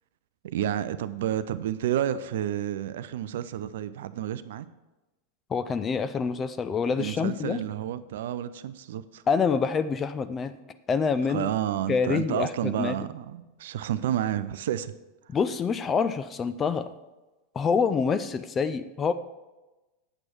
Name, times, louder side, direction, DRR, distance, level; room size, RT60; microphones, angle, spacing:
voice 1, 0.4-4.7 7.0-9.2 11.3-14.9, right 11 dB, 55° right, 14 dB, 0.4 m, -30 dB
voice 2, 5.5-7.6 9.3-10.6 10.9-11.5 11.9-13.0 15.3-16.9 17.5-19.1, left 5 dB, 20° left, 11 dB, 0.4 m, -26 dB
8.7 x 7.9 x 4.5 m, 1.1 s
figure-of-eight pair, 90°, 0 cm